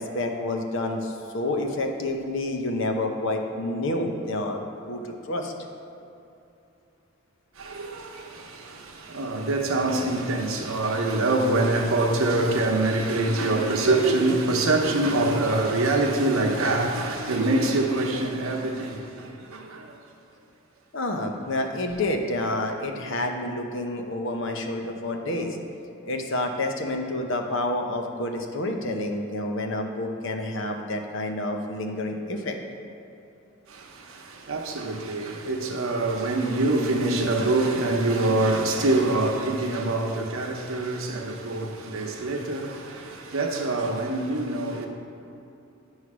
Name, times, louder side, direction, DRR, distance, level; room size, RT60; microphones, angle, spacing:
voice 1, 0.0-5.5 20.9-25.6 26.0-32.6, left 1 dB, 60° left, 0.7 m, -29 dB
voice 2, 7.6-19.9 33.7-44.9, right 2 dB, 85° right, 0.9 m, -25 dB
9.6 x 3.2 x 6.0 m
head